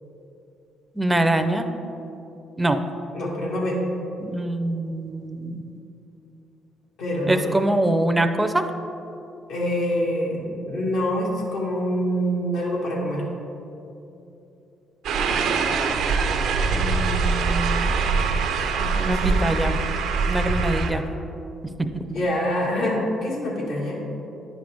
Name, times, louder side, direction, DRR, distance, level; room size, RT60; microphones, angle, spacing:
voice 1, 1.0-1.7 2.6-2.8 4.2-5.6 7.3-8.6 16.7-18.0 19.0-19.8 20.3-21.0 21.8-22.2, right 1 dB, 10° right, 7 dB, 0.5 m, -24 dB
voice 2, 3.1-3.8 7.0-7.5 9.5-13.2 18.8-19.5 21.7-21.8 22.1-24.0, equal, 85° left, -5 dB, 1.7 m, -26 dB
sound 1, 15.0-20.9, right 4 dB, 80° right, 0.6 m, -23 dB
9.9 x 5.2 x 3.5 m, 2.8 s
cardioid pair, 95°, 0 cm